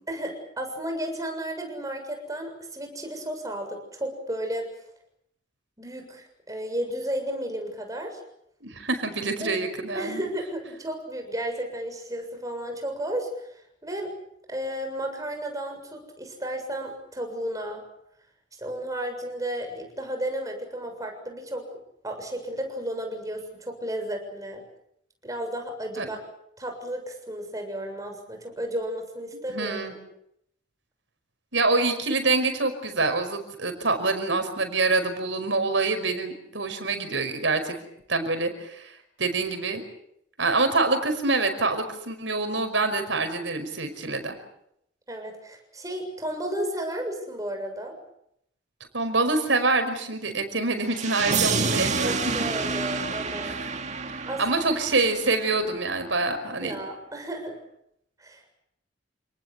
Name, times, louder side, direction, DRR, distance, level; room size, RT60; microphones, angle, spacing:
voice 1, 0.1-4.7 5.8-8.2 9.4-9.5 9.9-13.5 13.8-14.1 14.5-17.8 18.6-21.7 22.0-24.6 25.2-26.2 26.6-30.0 45.1-47.9 52.0-53.6 54.3-54.7 56.6-57.6 58.2-58.5, right 1 dB, 20° right, 4 dB, 7.1 m, -33 dB
voice 2, 8.6-10.2 26.0-26.1 29.5-30.0 31.5-37.8 38.1-38.9 39.2-39.8 40.4-44.4 48.9-52.5 53.4-53.5 54.4-56.8, right 3 dB, 75° right, 7 dB, 5.4 m, -26 dB
sound 1, 50.9-55.9, right 4 dB, 40° right, 2.2 m, -29 dB
29.0 x 19.5 x 8.3 m, 0.75 s
head